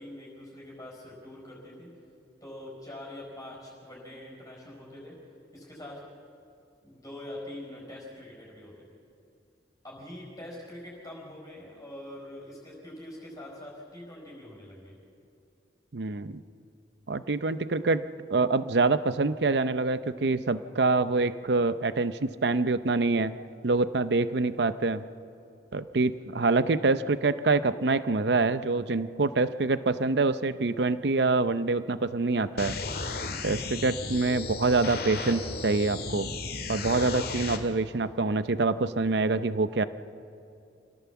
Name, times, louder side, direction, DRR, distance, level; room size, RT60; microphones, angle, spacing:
voice 1, 0.0-1.9 2.4-5.2 5.5-6.1 6.8-8.8 9.8-15.0, left 1 dB, 20° left, -3 dB, 4.9 m, -44 dB
voice 2, 15.9-16.4 17.1-23.4 23.6-25.0 25.7-32.8 33.4-36.3 36.7-39.8, right 3 dB, 65° right, 13 dB, 0.7 m, -26 dB
sound 1, 32.6-37.6, left 3 dB, 60° left, 1.9 m, -34 dB
26.0 x 17.0 x 7.2 m, 2.6 s
head